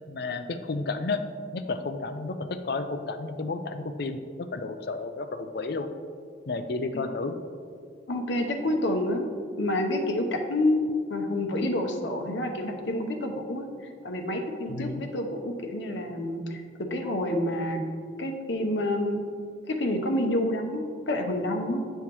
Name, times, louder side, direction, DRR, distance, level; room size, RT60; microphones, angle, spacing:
voice 1, 0.1-1.2 1.5-5.9 6.5-7.3 14.7-15.1, left 3 dB, 55° left, 8 dB, 0.5 m, -32 dB
voice 2, 8.1-9.3 9.6-16.6 16.9-17.8 18.2-19.2 19.7-21.8, left 1 dB, 75° left, 3 dB, 0.8 m, -28 dB
9.7 x 5.6 x 3.0 m, 2.2 s
head